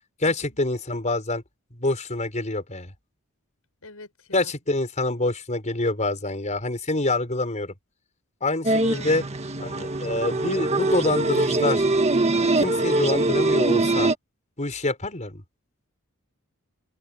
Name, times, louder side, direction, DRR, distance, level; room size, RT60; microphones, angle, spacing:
voice 1, 0.2-1.4 1.7-2.9 4.3-7.7 8.4-9.2 9.6-11.8 12.6-14.1 14.6-15.4, left 2 dB, 35° left, 5.3 m, -26 dB
voice 2, 3.8-4.5 8.8-9.3, left 2 dB, 80° left, 6.2 m, -42 dB
sound 1, 8.6-14.1, right 2 dB, 30° right, 1.6 m, -23 dB
head